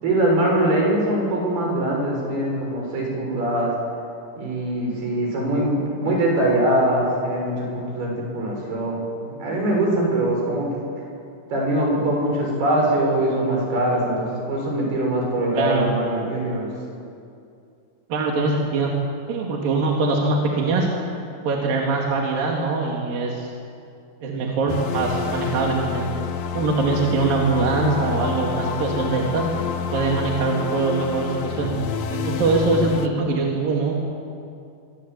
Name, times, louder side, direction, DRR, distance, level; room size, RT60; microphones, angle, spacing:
voice 1, 0.0-3.7 4.4-10.7 11.5-16.7, right 1 dB, 90° right, -1 dB, 8.7 m, -22 dB
voice 2, 15.5-15.9 18.1-18.9 19.3-20.9 21.4-23.5 24.2-26.1 26.5-29.5 29.9-31.7 32.1-33.9, right 3 dB, 70° right, -1 dB, 4.0 m, -22 dB
sound 1, 24.7-33.1, left 6 dB, 65° left, 1.8 m, -28 dB
24.5 x 24.0 x 8.3 m, 2.5 s
omnidirectional pair, 4.3 m